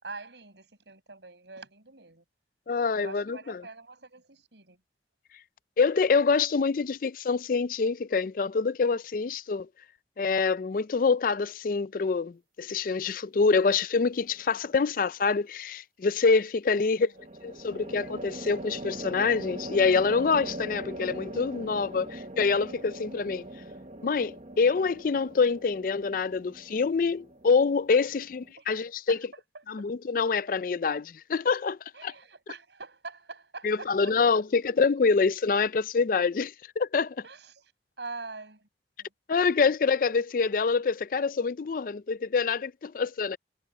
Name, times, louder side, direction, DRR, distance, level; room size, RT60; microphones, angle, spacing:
voice 1, 0.0-2.2 3.0-4.8 16.7-17.3 28.2-28.3 28.6-28.7 29.1-29.6 31.9-34.4 37.2-37.7 38.0-38.7 39.0-39.1, right 3 dB, 80° right, 5.8 m, -44 dB
voice 2, 2.7-3.6 5.8-9.7 10.2-17.1 17.4-23.5 24.0-29.2 29.7-32.1 33.6-37.2 39.3-43.4, left 4 dB, 50° left, 0.4 m, -26 dB
sound 1, 14.0-14.6 17.1-28.5, right 1 dB, 40° right, 1.0 m, -41 dB
head